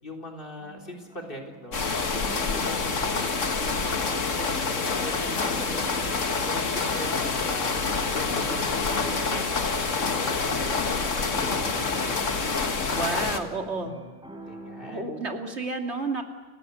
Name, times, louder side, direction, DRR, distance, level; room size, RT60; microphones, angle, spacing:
voice 1, 0.0-1.8 2.1-3.3 3.7-14.1 14.4-15.1, left 1 dB, 45° left, 5 dB, 3.9 m, -42 dB
sound 1, 0.6-15.0, right 2 dB, 5° right, 4.6 m, -45 dB
sound 2, 1.7-13.4, left 4 dB, 85° left, 2.1 m, -27 dB
voice 2, 12.9-14.0 14.9-16.2, right 3 dB, 60° right, 3 dB, 3.1 m, -30 dB
29.5 x 16.5 x 9.8 m, 1.3 s
omnidirectional pair, 1.3 m